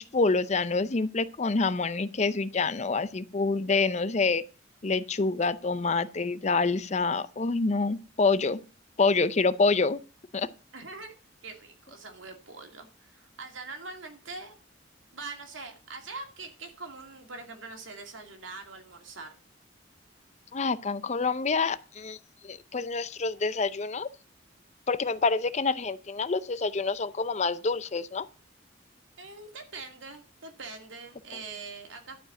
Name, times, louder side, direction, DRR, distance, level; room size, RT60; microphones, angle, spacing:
voice 1, 0.0-4.4 4.8-8.6 9.0-10.0 10.3-10.5 20.5-22.2 22.4-24.1 24.9-28.3, left 4 dB, 35° left, 0.5 m, -27 dB
voice 2, 10.7-11.1 11.4-14.6 15.1-19.3 29.2-32.2, right 3 dB, 85° right, 2.3 m, -43 dB
11.5 x 4.8 x 7.5 m
head